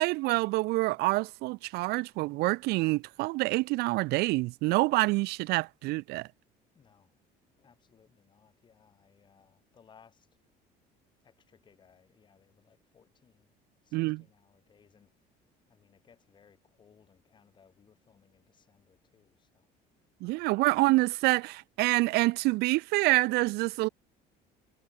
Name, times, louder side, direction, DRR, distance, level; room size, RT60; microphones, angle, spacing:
voice 1, 0.0-6.3 13.9-14.2 20.2-23.9, right 22 dB, 70° right, 0.6 m, -27 dB
voice 2, 6.7-7.1 7.6-10.3 11.2-13.5 13.8-15.1 15.7-19.7 20.2-20.7, left 7 dB, 25° left, 7.5 m, -63 dB
cardioid pair, 165°, 17 cm